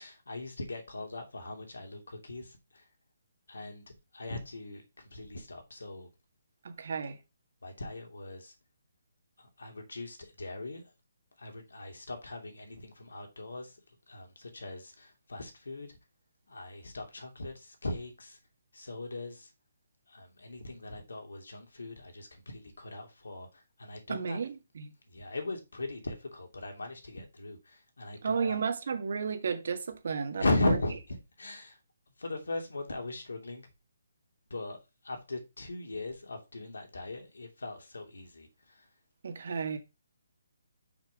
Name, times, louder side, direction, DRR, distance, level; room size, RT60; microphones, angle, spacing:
voice 1, 0.0-2.6 3.5-3.8 4.1-4.8 5.1-6.1 7.6-8.5 9.4-10.8 11.4-13.7 14.1-15.9 16.5-18.4 18.7-19.5 20.1-24.4 25.1-28.6 30.4-31.0 31.4-31.8 32.2-33.7 34.5-34.8 35.0-38.5, left 2 dB, 85° left, 2.9 m, -38 dB
voice 2, 6.6-7.2 24.1-24.9 28.2-30.8 39.2-39.8, right 5 dB, 60° right, 1.8 m, -33 dB
6.6 x 6.1 x 4.9 m
hypercardioid pair, 155°, 0 cm